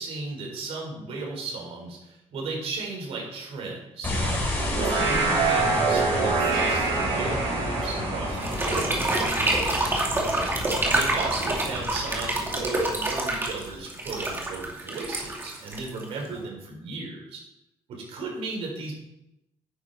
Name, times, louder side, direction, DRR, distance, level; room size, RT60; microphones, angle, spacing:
voice 1, 0.0-4.4 4.7-10.0 10.9-17.4 17.9-18.9, right 3 dB, 65° right, -1 dB, 4.2 m, -35 dB
sound 1, 4.0-13.4, left 1 dB, 20° left, 3.9 m, -31 dB
sound 2, 4.6-10.1, right 4 dB, 85° right, 4.0 m, -27 dB
sound 3, 8.4-16.4, right 2 dB, 20° right, 2.4 m, -27 dB
11.5 x 9.8 x 4.2 m, 0.89 s
cardioid pair, 150°, 11 cm